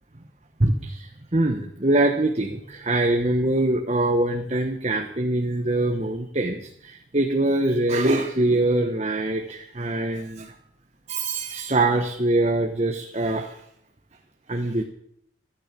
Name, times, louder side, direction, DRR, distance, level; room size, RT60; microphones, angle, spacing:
voice 1, 0.6-10.5 11.1-13.6 14.5-14.8, right 2 dB, 35° right, 3 dB, 1.2 m, -23 dB
13.0 x 12.5 x 6.8 m, 0.72 s
head